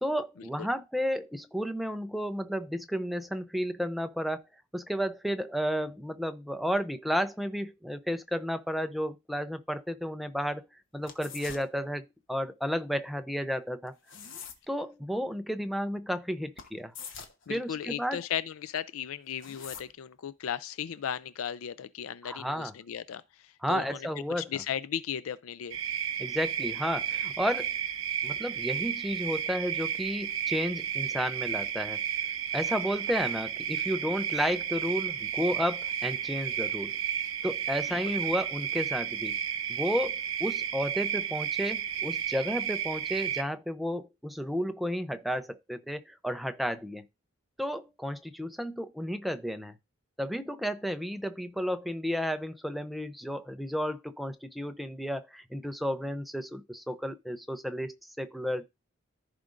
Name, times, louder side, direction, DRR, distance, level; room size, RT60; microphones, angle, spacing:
voice 1, 0.0-4.4 4.7-10.6 10.9-13.9 14.7-16.9 17.5-18.2 22.2-22.7 23.6-24.5 26.2-27.7 28.2-32.0 32.5-37.0 37.4-39.4 39.7-47.0 47.6-49.8 50.2-58.6, equal, ahead, 0.5 m, -32 dB
sound 1, 11.0-11.7 13.9-14.7 16.6-16.7 16.9-17.5 19.3-19.9, left 6 dB, 60° left, 1.1 m, -44 dB
voice 2, 17.5-24.1 24.4-25.8 37.9-38.0, left 9 dB, 80° left, 0.4 m, -36 dB
sound 2, 25.7-43.4, right 9 dB, 75° right, 0.9 m, -32 dB
14.5 x 5.0 x 2.5 m
head